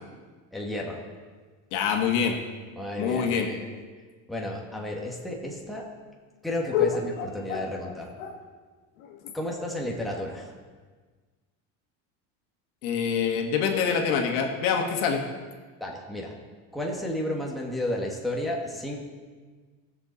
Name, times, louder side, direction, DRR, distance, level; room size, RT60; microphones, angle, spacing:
voice 1, 0.5-1.0 2.8-3.6 4.3-5.9 6.4-8.1 9.3-10.5 15.8-16.4 16.7-19.0, left 1 dB, ahead, -2 dB, 1.4 m, -32 dB
voice 2, 1.7-2.3 3.0-3.5 6.7-6.9 7.2-7.9 8.2-8.3 9.0-9.2 12.8-15.2, left 7 dB, 80° left, 3 dB, 1.7 m, -26 dB
18.5 x 6.8 x 4.0 m, 1.4 s
cardioid pair, 150°, 38 cm